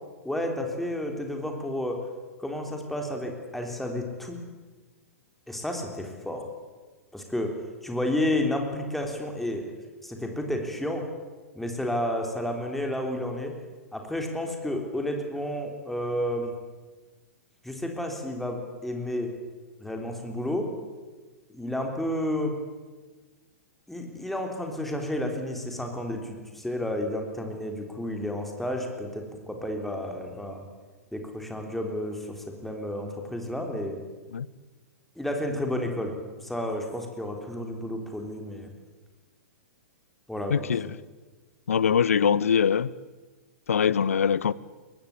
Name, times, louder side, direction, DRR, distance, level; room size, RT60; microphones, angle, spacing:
voice 1, 0.2-2.0 2.4-4.4 5.5-6.5 7.1-7.5 7.8-9.7 10.0-11.0 11.5-13.5 13.9-16.5 17.6-19.3 19.8-20.7 21.5-22.5 23.9-30.6 31.1-34.0 35.2-38.7 40.3-40.7, left 1 dB, ahead, 2 dB, 3.7 m, -31 dB
voice 2, 40.5-40.9 41.7-42.9 43.7-44.5, left 7 dB, 65° left, 20 dB, 0.7 m, -23 dB
23.0 x 18.5 x 8.5 m, 1.3 s
figure-of-eight pair, 110°, 8 cm